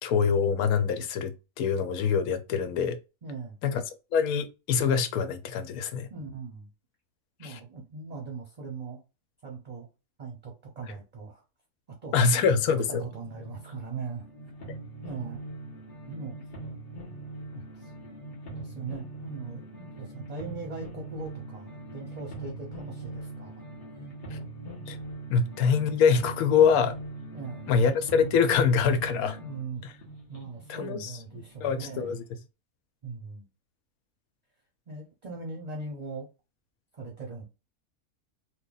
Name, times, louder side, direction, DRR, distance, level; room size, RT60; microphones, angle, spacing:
voice 1, 0.0-3.0 3.6-3.8 4.1-6.1 7.4-7.6 12.1-13.1 24.3-24.4 24.9-25.0 25.3-26.9 27.7-29.4 30.7-31.1 31.6-32.2, left 6 dB, 85° left, 1.1 m, -24 dB
voice 2, 3.2-3.6 6.1-6.7 7.4-9.0 9.4-9.9 10.2-11.4 12.0-14.2 15.0-15.4 16.1-16.3 17.5-17.9 18.6-23.5 27.3-27.7 29.4-29.8 30.3-32.2 33.0-33.5 34.9-36.3 36.9-37.4, right 4 dB, 40° right, 0.6 m, -40 dB
sound 1, 13.0-32.1, right 2 dB, 55° left, 1.4 m, -42 dB
3.2 x 2.1 x 3.8 m
omnidirectional pair, 1.5 m